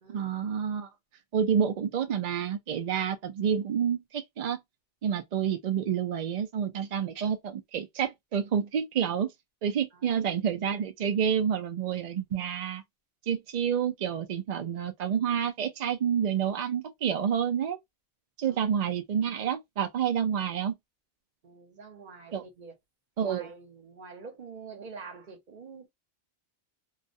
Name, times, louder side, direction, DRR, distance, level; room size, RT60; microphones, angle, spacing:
voice 1, 0.1-0.9 1.3-4.6 5.0-9.3 9.6-12.8 13.3-17.8 18.4-20.8 22.3-22.4 23.2-23.5, right 8 dB, 65° right, 0.4 m, -29 dB
voice 2, 21.4-22.7 23.2-25.9, right 4 dB, 45° right, 0.9 m, -46 dB
2.4 x 2.1 x 2.5 m
omnidirectional pair, 1.2 m